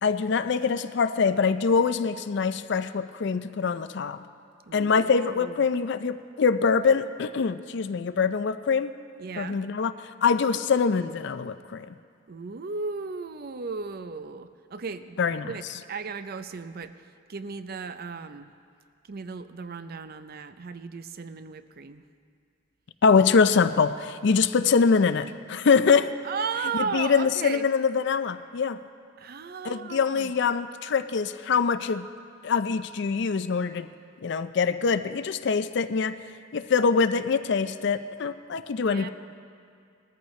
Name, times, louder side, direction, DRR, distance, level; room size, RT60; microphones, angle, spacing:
voice 1, 0.0-4.2 4.7-8.9 9.4-9.9 10.2-11.9 15.2-15.5 23.0-26.1 26.9-28.8 29.6-32.1 32.4-33.9 34.2-36.2 36.5-39.1, left 5 dB, 65° left, 12 dB, 0.4 m, -24 dB
voice 2, 4.7-5.6 9.2-9.6 12.3-15.2 15.4-16.9 17.3-18.5 19.1-22.0 26.2-27.7 29.2-30.3 38.8-39.1, right 5 dB, 55° right, 11 dB, 0.5 m, -35 dB
20.0 x 14.0 x 3.2 m, 2.3 s
head